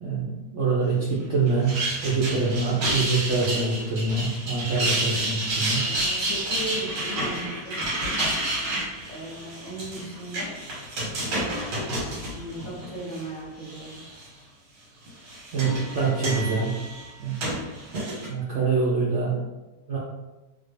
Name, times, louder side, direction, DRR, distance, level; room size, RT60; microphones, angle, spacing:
voice 1, 0.0-5.9 15.5-16.7 17.2-17.4 18.2-19.4 19.9-20.0, right 4 dB, 65° right, -5 dB, 0.7 m, -25 dB
sound 1, 1.5-13.2 13.6-14.2 15.1-18.3, right 1 dB, 90° right, 1.7 m, -30 dB
voice 2, 5.8-8.2 9.1-10.6 11.1-11.6 12.0-14.0, right 1 dB, 60° left, -4 dB, 1.1 m, -37 dB
3.4 x 2.0 x 3.2 m, 1.1 s
omnidirectional pair, 1.8 m